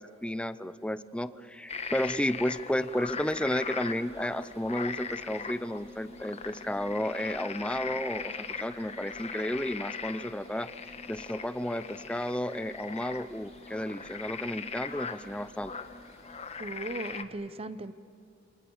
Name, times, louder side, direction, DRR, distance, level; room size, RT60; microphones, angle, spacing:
voice 1, 0.0-15.7, left 1 dB, 5° left, 14 dB, 0.6 m, -32 dB
sound 1, 1.7-17.2, left 5 dB, 35° left, 1.2 m, -40 dB
sound 2, 2.9-16.6, left 1 dB, 45° right, 3.8 m, -53 dB
voice 2, 16.6-17.9, right 2 dB, 30° right, 14 dB, 0.9 m, -37 dB
28.0 x 24.0 x 7.2 m, 2.9 s
head